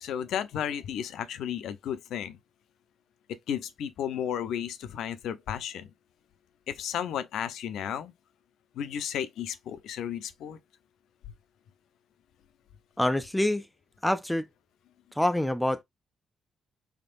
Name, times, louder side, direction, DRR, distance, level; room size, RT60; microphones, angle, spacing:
voice 1, 0.0-2.4 3.3-5.9 6.7-8.1 8.7-10.6, left 9 dB, 80° left, 0.6 m, -33 dB
voice 2, 13.0-13.7 14.0-14.5 15.1-15.8, left 1 dB, 5° left, 0.4 m, -26 dB
3.6 x 3.4 x 2.4 m
cardioid pair, 70°, 0 cm